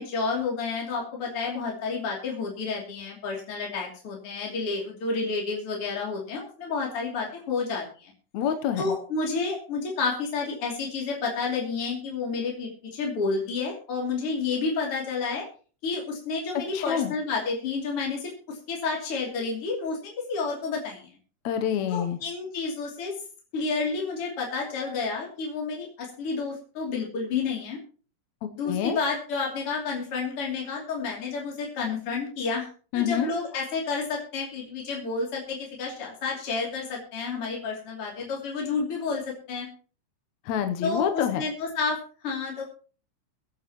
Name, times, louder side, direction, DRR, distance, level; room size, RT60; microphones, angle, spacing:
voice 1, 0.0-8.1 8.8-15.4 15.8-21.1 21.9-23.1 23.5-27.8 28.6-32.7 32.9-39.7 40.8-42.6, left 4 dB, 45° left, -2 dB, 3.7 m, -30 dB
voice 2, 8.3-8.9 16.5-17.1 21.4-22.2 28.4-29.0 32.9-33.3 40.5-41.4, left 9 dB, 70° left, 7 dB, 2.0 m, -27 dB
23.0 x 9.3 x 3.0 m, 0.38 s
omnidirectional pair, 3.6 m